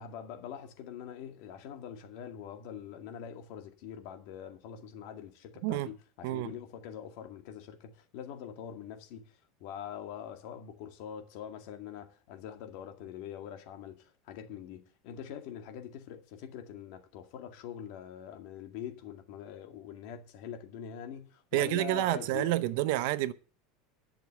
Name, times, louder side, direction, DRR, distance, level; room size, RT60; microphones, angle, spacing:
voice 1, 0.0-22.5, left 9 dB, 50° left, 2.1 m, -44 dB
voice 2, 6.2-6.5 21.5-23.3, right 15 dB, 55° right, 0.7 m, -29 dB
11.5 x 6.6 x 7.9 m
supercardioid pair, 175°, 0 cm